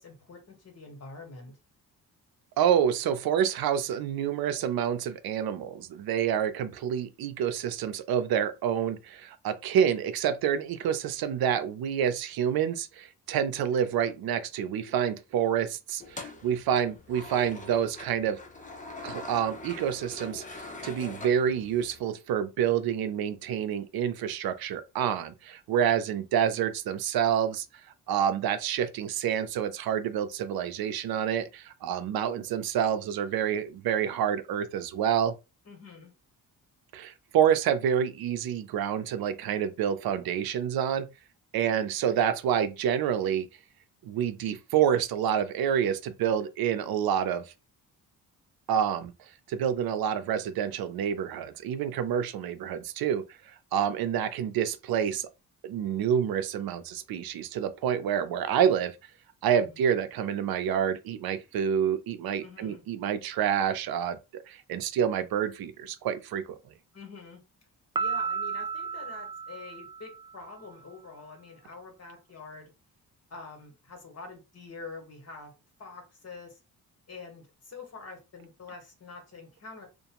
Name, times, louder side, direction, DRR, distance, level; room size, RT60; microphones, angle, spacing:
voice 1, 0.0-1.5 35.6-36.1 59.6-59.8 62.4-62.8 66.9-67.4 68.0-72.7 73.3-75.5 75.8-76.6 77.1-79.9, left 3 dB, 45° left, 1.4 m, -46 dB
voice 2, 2.6-18.4 19.0-27.6 28.1-35.3 36.9-41.1 41.5-43.5 44.0-47.4 48.7-49.1 49.5-55.3 55.6-59.0 59.4-66.6, right 9 dB, 75° right, 0.6 m, -28 dB
sound 1, 16.0-22.0, left 2 dB, 20° left, 0.6 m, -43 dB
Piano, 67.9-70.5, right 5 dB, 15° right, 0.3 m, -33 dB
2.5 x 2.2 x 2.9 m
cardioid pair, 95°, 36 cm